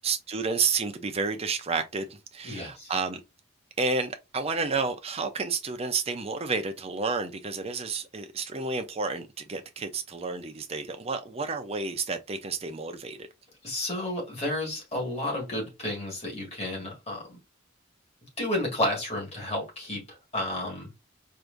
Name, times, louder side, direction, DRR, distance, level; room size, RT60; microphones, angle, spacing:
voice 1, 0.0-3.2 3.8-13.3, right 4 dB, 30° right, 0.6 m, -30 dB
voice 2, 2.4-2.9 13.6-17.4 18.4-20.9, left 1 dB, 30° left, 1.9 m, -31 dB
4.6 x 2.7 x 2.5 m
head